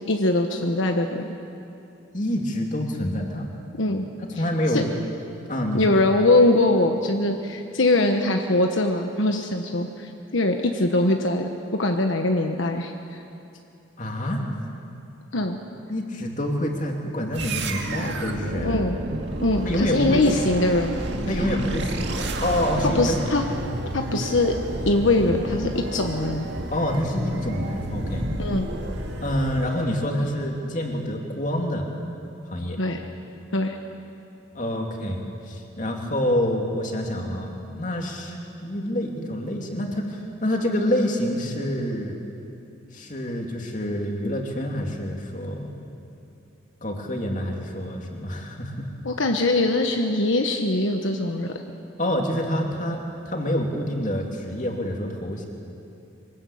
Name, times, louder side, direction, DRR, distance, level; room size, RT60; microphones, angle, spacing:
voice 1, 0.1-1.4 3.8-4.1 4.7-4.8 5.7-11.5 11.8-13.2 15.3-15.6 18.6-19.0 19.4-20.9 22.8-23.4 23.9-24.5 24.9-26.5 28.4-28.7 32.8-33.0 33.5-33.8 49.0-51.5, left 2 dB, 75° left, 4 dB, 1.2 m, -22 dB
voice 2, 2.1-3.4 4.3-4.8 5.5-5.9 14.0-14.5 15.9-18.8 19.7-20.2 21.3-23.2 26.7-28.3 29.2-31.9 32.5-32.8 34.5-42.2 42.9-45.7 46.8-48.9 52.0-55.5, equal, 40° left, 1 dB, 2.8 m, -27 dB
sound 1, 17.3-30.0, right 1 dB, 60° right, 2.1 m, -30 dB
24.5 x 20.0 x 8.6 m, 2.7 s
head